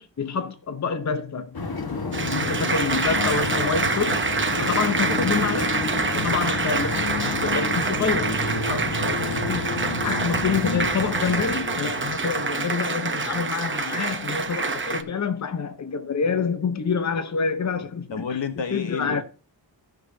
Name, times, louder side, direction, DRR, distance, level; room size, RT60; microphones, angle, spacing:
voice 1, 0.0-1.5 2.3-4.2 4.6-5.8 6.1-9.7 10.0-18.3 18.7-19.2, left 5 dB, 40° left, 0.8 m, -27 dB
sound 1, 1.5-13.4, left 3 dB, 55° left, 1.5 m, -30 dB
Applause, 2.1-15.0, right 4 dB, 25° right, 0.8 m, -26 dB
voice 2, 2.9-3.8 4.8-5.0 8.8-9.2 18.1-19.2, left 6 dB, 80° left, 1.2 m, -32 dB
16.5 x 6.2 x 2.7 m
wide cardioid pair, 110°, 43 cm